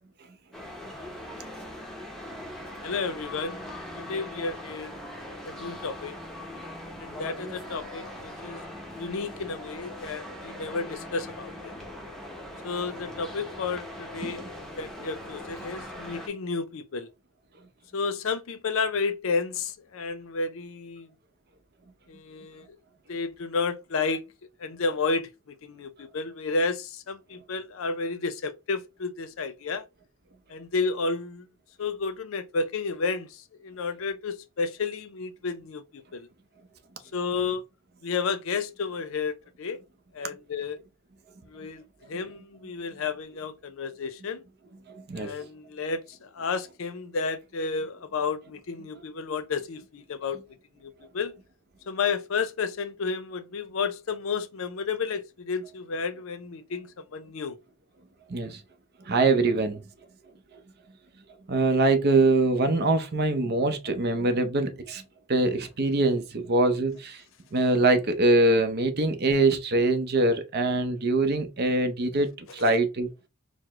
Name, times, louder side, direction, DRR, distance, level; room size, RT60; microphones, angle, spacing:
sound 1, 0.5-16.3, left 1 dB, ahead, 0.7 m, -40 dB
voice 1, 2.8-3.6 4.0-5.0 5.3-6.1 7.0-8.6 9.0-11.7 12.6-17.1 17.9-21.1 22.1-22.7 23.1-24.2 24.6-29.9 30.5-31.5 31.8-36.3 37.1-37.6 38.0-39.8 40.1-40.8 41.5-44.4 45.2-50.4 50.8-51.4 51.9-57.6 72.5-72.8, left 4 dB, 65° left, 0.5 m, -31 dB
voice 2, 59.1-59.8 61.5-65.0 65.3-67.2 67.5-73.1, right 2 dB, 50° right, 0.7 m, -23 dB
4.7 x 2.1 x 3.5 m
head